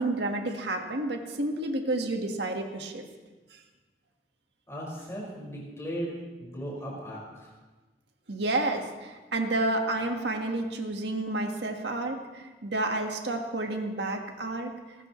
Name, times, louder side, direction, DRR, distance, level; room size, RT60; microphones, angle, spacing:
voice 1, 0.0-3.0 8.3-14.7, right 2 dB, 85° right, 3 dB, 1.7 m, -30 dB
voice 2, 4.7-6.1 6.4-7.5, equal, 15° left, -4 dB, 5.4 m, -37 dB
29.0 x 13.5 x 3.2 m, 1.2 s
head